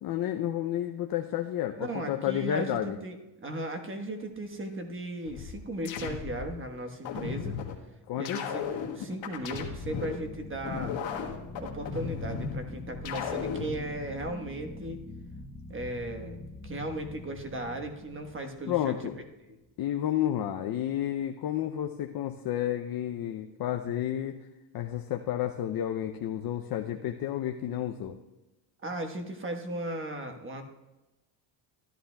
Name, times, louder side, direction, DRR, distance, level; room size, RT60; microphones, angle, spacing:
voice 1, 0.0-3.0 8.1-8.4 18.7-19.1 19.8-24.4 24.7-28.2, left 11 dB, 50° left, 4 dB, 0.6 m, -31 dB
voice 2, 1.8-7.6 8.2-8.6 8.9-11.0 11.6-15.0 15.7-19.0 19.5-19.6 28.8-30.6, right 1 dB, 25° right, 5 dB, 1.3 m, -36 dB
sound 1, 4.3-4.9 9.2-19.4, left 2 dB, 10° left, 1.0 m, -45 dB
sound 2, 5.2-6.6 7.0-7.8 8.2-10.2 10.6-12.6 13.0-13.8, left 7 dB, 65° left, 1.4 m, -35 dB
14.5 x 11.0 x 2.3 m, 1.0 s
cardioid pair, 105°, 49 cm